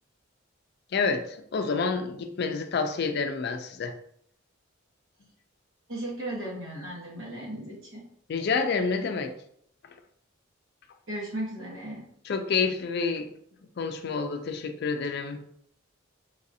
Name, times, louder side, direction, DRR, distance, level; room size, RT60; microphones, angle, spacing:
voice 1, 0.9-3.9 8.3-9.3 12.2-13.3 13.8-15.4, left 5 dB, 55° left, 6 dB, 0.4 m, -28 dB
voice 2, 5.9-8.0 11.1-12.0, right 1 dB, 85° right, -4 dB, 1.3 m, -36 dB
3.9 x 2.5 x 2.7 m, 0.67 s
head